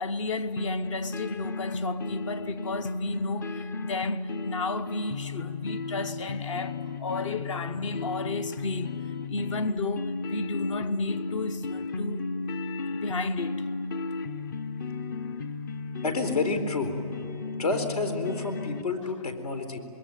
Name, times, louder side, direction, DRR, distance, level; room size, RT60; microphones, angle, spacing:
voice 1, 0.0-12.3 12.9-13.7 19.0-19.1, left 3 dB, 50° left, 1.1 m, -33 dB
sound 1, 0.6-18.8, left 3 dB, 30° left, 0.6 m, -34 dB
voice 2, 16.0-16.9 17.6-19.8, left 3 dB, 75° left, 4.1 m, -29 dB
26.5 x 22.0 x 9.2 m
hypercardioid pair, 160°, 20 cm